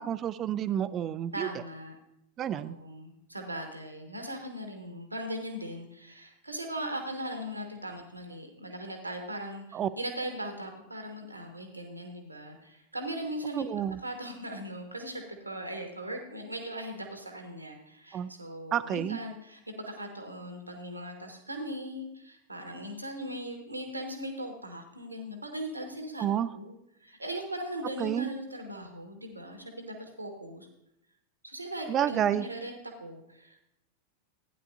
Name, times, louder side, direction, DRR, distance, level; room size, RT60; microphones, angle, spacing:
voice 1, 0.0-1.5 2.4-2.8 9.7-9.9 13.5-14.0 18.1-18.3 18.7-19.2 26.2-26.5 28.0-28.3 31.9-32.5, right 10 dB, 30° right, 14 dB, 0.5 m, -29 dB
voice 2, 1.3-1.9 2.5-26.3 26.5-26.7 27.0-30.7 31.4-32.7 33.0-33.6, right 1 dB, 85° right, 4 dB, 1.5 m, -39 dB
15.5 x 9.9 x 2.6 m, 0.82 s
figure-of-eight pair, 90°, 0 cm